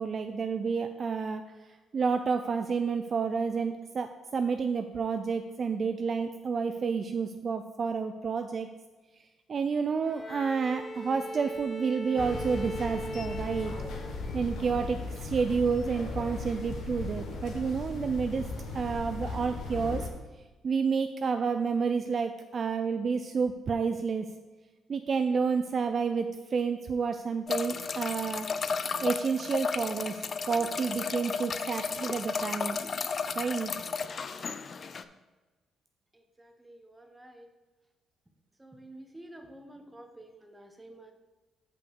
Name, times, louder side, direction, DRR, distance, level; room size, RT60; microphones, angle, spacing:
voice 1, 0.0-1.4 1.9-8.7 9.5-13.7 14.3-18.5 18.7-20.1 20.6-24.3 24.9-28.5 29.0-32.8 33.4-33.7, right 5 dB, 45° right, 7 dB, 0.4 m, -30 dB
Bowed string instrument, 10.0-14.4, right 1 dB, 25° left, 1.5 m, -40 dB
sound 1, 12.2-20.1, left 3 dB, 70° left, 1.3 m, -37 dB
sound 2, 27.5-35.0, left 5 dB, 45° left, 0.4 m, -33 dB
voice 2, 36.1-37.5 38.6-41.1, right 1 dB, 15° right, 5 dB, 1.1 m, -50 dB
5.4 x 5.3 x 6.6 m, 1.2 s
cardioid pair, 90°, 0 cm